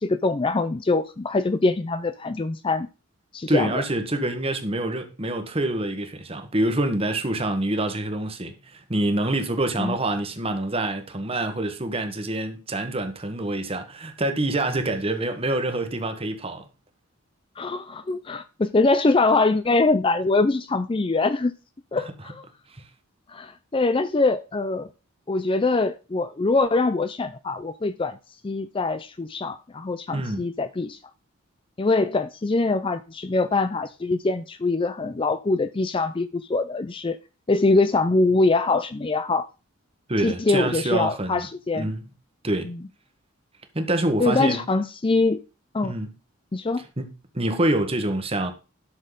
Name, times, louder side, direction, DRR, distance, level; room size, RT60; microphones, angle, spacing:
voice 1, 0.0-2.9 3.3-3.8 9.8-10.0 17.6-21.5 21.9-22.5 23.3-24.9 25.3-28.2 28.4-31.0 31.8-37.2 37.5-39.5 40.2-41.9 42.6-42.8 44.2-45.4 45.7-46.0 46.5-46.8, left 3 dB, 25° left, 0.4 m, -23 dB
voice 2, 3.5-16.6 22.0-22.1 22.7-22.8 30.1-30.4 40.1-41.4 41.7-42.1 42.4-42.7 43.7-44.6 45.8-46.1 47.0-48.5, right 1 dB, 30° right, 1.4 m, -26 dB
11.5 x 6.4 x 3.9 m
head